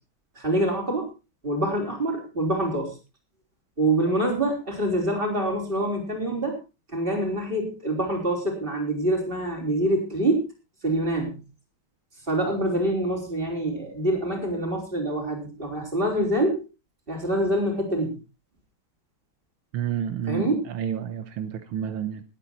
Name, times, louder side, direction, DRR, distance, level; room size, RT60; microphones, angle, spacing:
voice 1, 0.4-1.1 1.4-2.9 3.8-6.5 6.9-10.5 10.8-11.4 12.3-16.6 17.1-18.2 20.3-20.6, right 1 dB, 25° right, 2 dB, 4.8 m, -25 dB
voice 2, 19.7-22.2, right 9 dB, 80° right, 11 dB, 1.8 m, -30 dB
20.0 x 9.0 x 4.2 m, 0.30 s
omnidirectional pair, 2.3 m